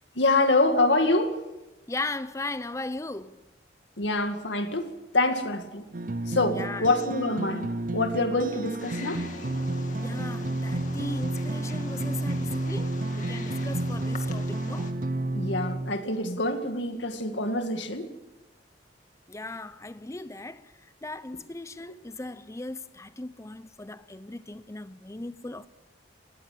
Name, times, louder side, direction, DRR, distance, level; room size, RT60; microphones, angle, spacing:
voice 1, 0.2-1.3 4.0-5.9 6.3-7.7 7.9-9.2 15.3-18.1, left 2 dB, 80° left, 2.2 m, -25 dB
voice 2, 1.9-3.4 6.5-6.8 10.0-14.9 19.3-20.7 21.0-25.7, left 2 dB, 15° left, 0.6 m, -37 dB
sound 1, 5.9-15.9, right 1 dB, 50° right, 0.7 m, -31 dB
Wild animals, 8.8-14.9, left 3 dB, 45° left, 2.2 m, -44 dB
19.0 x 18.5 x 8.4 m
head